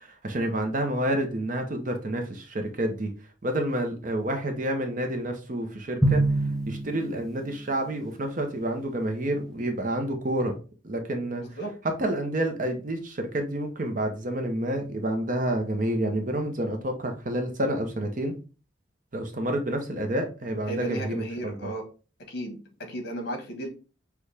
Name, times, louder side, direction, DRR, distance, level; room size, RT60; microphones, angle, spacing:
voice 1, 0.0-3.1 3.4-6.2 6.7-10.6 10.8-18.3 19.1-21.7, right 1 dB, 40° right, 4 dB, 0.7 m, -29 dB
Drum, 6.0-7.8, right 2 dB, ahead, 0.5 m, -25 dB
voice 2, 20.7-21.8 22.3-22.6 22.9-23.7, right 1 dB, 55° left, 3 dB, 1.4 m, -33 dB
6.3 x 2.3 x 3.4 m, 0.34 s
head